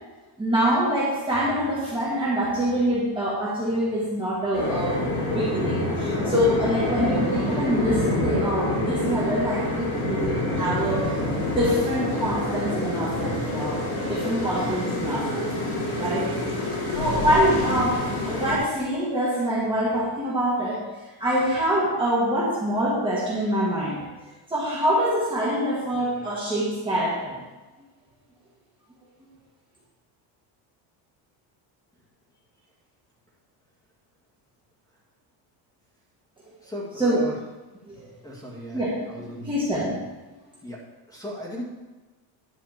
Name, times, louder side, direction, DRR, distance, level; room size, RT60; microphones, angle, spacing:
voice 1, 0.4-11.2 11.5-15.5 16.0-16.4 16.9-20.9 21.2-24.0 24.5-27.4 37.0-37.2 37.9-38.1 38.4-40.0, equal, 10° right, -8 dB, 1.6 m, -25 dB
sound 1, 4.5-18.6, left 1 dB, 50° left, 3.7 m, -27 dB
voice 2, 36.6-37.3 38.2-38.8 39.1-39.5 40.6-40.8 41.1-41.7, equal, 5° left, -4 dB, 1.9 m, -36 dB
10.5 x 4.3 x 7.4 m, 1.2 s
cardioid pair, 175°, 46 cm